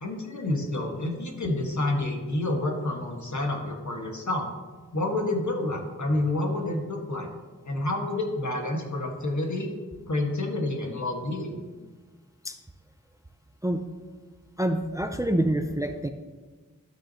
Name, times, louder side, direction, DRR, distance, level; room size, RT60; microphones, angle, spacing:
voice 1, 0.0-4.5 4.9-7.3 7.7-9.7 10.1-11.6, left 2 dB, 60° left, 1 dB, 1.5 m, -29 dB
voice 2, 14.6-16.1, right 1 dB, 10° right, 6 dB, 0.5 m, -26 dB
12.5 x 6.1 x 2.8 m, 1.3 s
wide cardioid pair, 60°, 33 cm